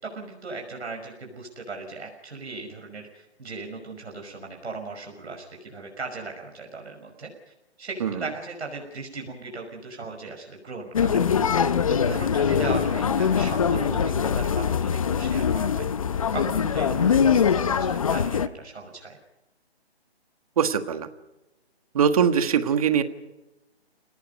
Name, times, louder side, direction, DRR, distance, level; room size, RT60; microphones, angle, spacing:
voice 1, 0.0-11.2 11.5-15.9 16.3-19.2, right 3 dB, 80° right, 2 dB, 5.8 m, -38 dB
sound 1, 10.9-18.5, left 7 dB, 30° left, 0.8 m, -23 dB
voice 2, 20.6-21.1 21.9-23.0, right 7 dB, 35° right, 10 dB, 1.5 m, -22 dB
29.0 x 19.0 x 5.3 m, 1.0 s
hypercardioid pair, 165°, 33 cm